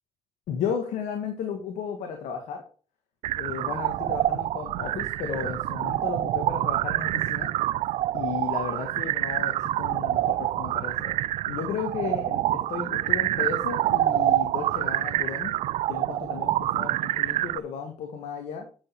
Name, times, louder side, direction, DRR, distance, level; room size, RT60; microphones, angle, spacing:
voice 1, 0.5-2.6 3.4-7.5 8.1-11.2 11.5-15.6 15.9-18.6, left 7 dB, 85° left, 4 dB, 1.6 m, -34 dB
sound 1, 3.2-17.6, right 14 dB, 80° right, 0.4 m, -27 dB
8.8 x 6.4 x 4.5 m, 0.39 s
cardioid pair, 70°, 11 cm